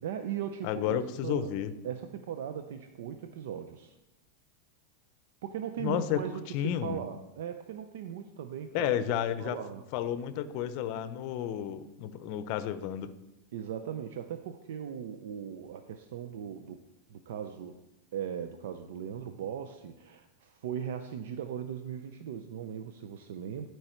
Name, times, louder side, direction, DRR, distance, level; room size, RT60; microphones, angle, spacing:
voice 1, 0.0-1.5 1.8-3.9 5.4-8.9 9.4-9.8 13.5-16.8 17.1-17.8 18.1-23.7, right 9 dB, 75° right, 8 dB, 0.5 m, -38 dB
voice 2, 0.6-1.7 5.8-6.2 6.5-7.0 8.7-9.6 9.9-13.1, left 10 dB, 50° left, 12 dB, 0.6 m, -31 dB
12.0 x 4.6 x 4.4 m, 0.94 s
supercardioid pair, 140°, 0 cm